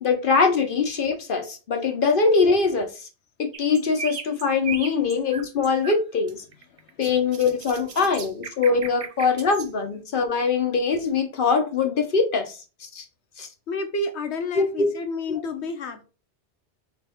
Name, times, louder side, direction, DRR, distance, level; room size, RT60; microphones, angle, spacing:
voice 1, 0.0-3.1 3.4-6.4 7.0-13.0 13.4-13.5 14.5-14.9, left 4 dB, 55° left, 0.8 m, -22 dB
sound 1, 3.5-6.0 6.3-9.7, right 6 dB, 50° right, 0.4 m, -36 dB
voice 2, 6.7-7.1 13.7-16.0, left 2 dB, 75° left, 1.1 m, -30 dB
4.0 x 2.9 x 4.3 m
omnidirectional pair, 1.1 m